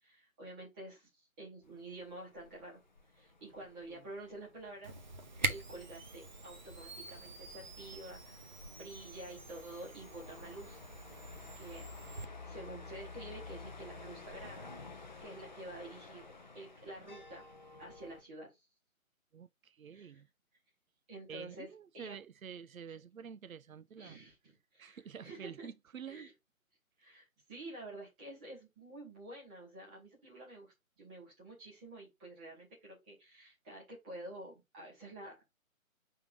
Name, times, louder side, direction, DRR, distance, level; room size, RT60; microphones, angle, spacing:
voice 1, 0.0-2.8 3.1-4.9 5.5-10.8 11.6-16.3 16.5-17.5 17.8-18.7 19.9-20.2 21.1-22.2 22.9-23.0 24.0-25.7 26.0-26.3 27.0-35.4, right 2 dB, 5° right, 0.9 m, -49 dB
sound 1, 1.6-18.2, left 3 dB, 35° left, 0.5 m, -52 dB
Camera, 4.8-12.3, right 3 dB, 35° right, 0.7 m, -44 dB
voice 2, 19.3-20.3 21.3-24.2 24.8-26.3, right 7 dB, 75° right, 0.6 m, -48 dB
5.5 x 3.6 x 4.9 m
figure-of-eight pair, 145°, 42 cm